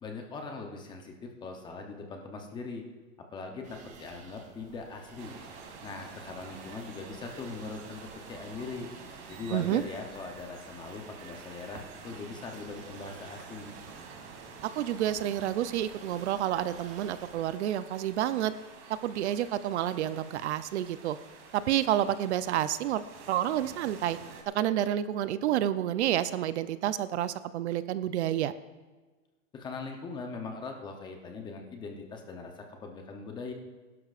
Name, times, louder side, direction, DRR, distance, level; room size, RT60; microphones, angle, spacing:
voice 1, 0.0-2.8 3.3-5.4 5.8-8.9 9.3-13.8 29.5-33.5, left 4 dB, 10° left, 3 dB, 0.7 m, -41 dB
sound 1, 3.6-17.6, right 5 dB, 20° right, 0.9 m, -53 dB
sound 2, 5.2-24.4, right 5 dB, 40° right, 2.1 m, -49 dB
voice 2, 9.5-9.8 14.8-18.5 19.0-21.2 21.5-24.2 24.5-28.5, right 12 dB, 60° right, 14 dB, 0.6 m, -29 dB
21.0 x 12.0 x 2.5 m, 1.3 s
supercardioid pair, 160°, 38 cm